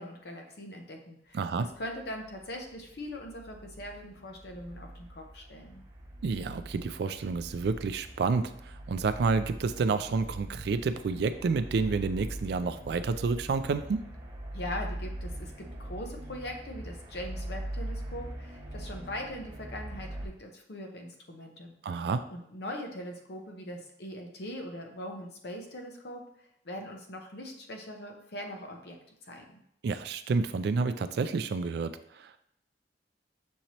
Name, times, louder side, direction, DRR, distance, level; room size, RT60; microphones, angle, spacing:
voice 1, 0.0-1.4 1.8-5.8 14.5-21.7 22.3-26.2 26.6-29.0 29.2-29.6, left 1 dB, 65° left, 3 dB, 0.8 m, -41 dB
voice 2, 1.3-1.7 6.2-14.0 21.8-22.2 29.8-32.4, right 4 dB, 65° right, 11 dB, 0.3 m, -29 dB
sound 1, 1.7-20.3, right 1 dB, 30° right, 1.2 m, -42 dB
6.3 x 2.8 x 2.9 m, 0.73 s
head